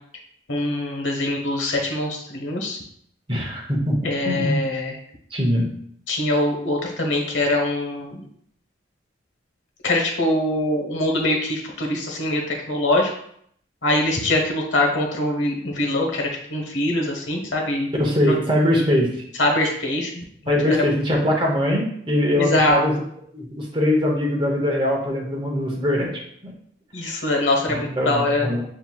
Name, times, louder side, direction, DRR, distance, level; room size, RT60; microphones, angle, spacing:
voice 1, 0.5-2.8 4.0-5.0 6.1-8.3 9.8-13.1 13.8-17.9 19.4-20.8 22.4-22.8 26.9-28.5, left 1 dB, 80° left, 1 dB, 1.1 m, -23 dB
voice 2, 3.3-4.6 5.3-5.7 18.0-19.1 20.5-23.0 23.3-26.1 26.4-26.5 27.7-28.6, left 1 dB, 25° right, -1 dB, 0.8 m, -22 dB
7.1 x 2.8 x 2.3 m, 0.67 s
head